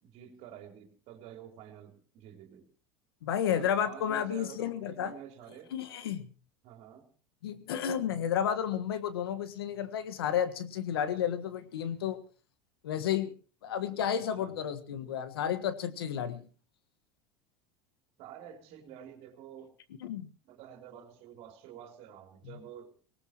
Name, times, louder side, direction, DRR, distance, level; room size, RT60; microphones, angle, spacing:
voice 1, 0.0-2.7 3.5-5.7 6.6-7.1 14.4-14.5 18.2-19.7 20.4-22.9, right 9 dB, 55° right, 4 dB, 3.6 m, -49 dB
voice 2, 3.2-5.1 5.7-6.3 7.4-12.2 12.8-13.3 13.6-16.5 20.0-20.3 22.4-22.6, left 9 dB, 85° left, 11 dB, 1.5 m, -32 dB
19.0 x 19.0 x 3.0 m, 0.39 s
hypercardioid pair, 90°, 12 cm